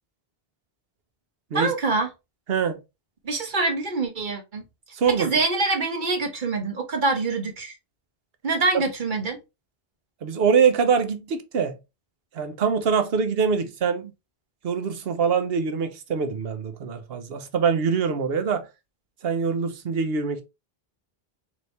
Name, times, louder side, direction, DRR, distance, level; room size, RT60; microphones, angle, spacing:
voice 1, 1.5-2.1 3.2-4.6 5.2-7.7 8.4-9.4, right 3 dB, 50° right, 1.2 m, -25 dB
voice 2, 2.5-2.8 4.9-5.3 8.7-8.8 10.2-11.7 12.3-14.1 14.6-18.7 19.2-20.4, right 6 dB, 75° right, 1.0 m, -24 dB
4.1 x 2.9 x 3.2 m
omnidirectional pair, 1.0 m